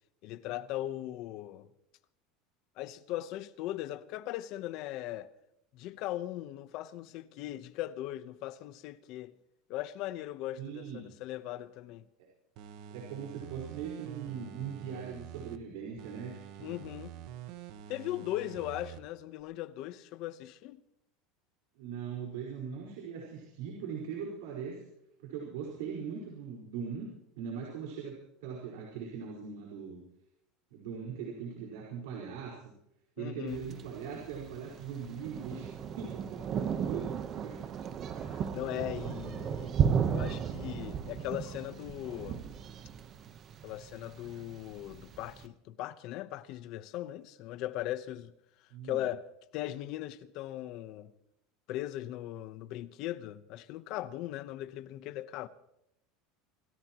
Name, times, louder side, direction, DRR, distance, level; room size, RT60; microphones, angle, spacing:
voice 1, 0.2-1.7 2.8-5.3 5.7-9.3 9.7-12.1 16.6-17.1 17.9-20.8 33.2-33.6 38.2-39.7 40.1-42.4 43.6-48.3 48.6-49.2 49.5-51.1 51.7-55.5, left 14 dB, 50° left, 1.0 m, -39 dB
voice 2, 10.6-11.0 12.2-12.3 12.9-16.9 21.8-24.8 25.2-27.1 27.4-30.0 30.7-32.7 33.2-37.2 37.4-37.8 48.7-49.0, right 7 dB, 80° right, 5.0 m, -40 dB
sound 1, 12.6-15.6 16.0-19.0 19.4-19.5, right 10 dB, 55° right, 1.3 m, -47 dB
Thunder, 33.5-45.4, right 8 dB, 30° right, 1.1 m, -35 dB
27.5 x 17.0 x 3.1 m
supercardioid pair, 160°, 0 cm